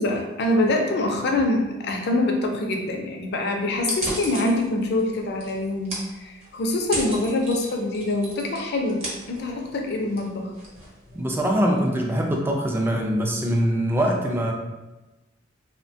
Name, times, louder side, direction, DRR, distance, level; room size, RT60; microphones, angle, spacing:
voice 1, 0.0-10.5, left 2 dB, 60° left, 2 dB, 0.4 m, -25 dB
sound 1, 3.8-11.5, right 1 dB, 35° right, 0.8 m, -36 dB
voice 2, 11.1-14.5, equal, 10° right, 0 dB, 0.3 m, -23 dB
3.0 x 2.1 x 2.6 m, 1.1 s
head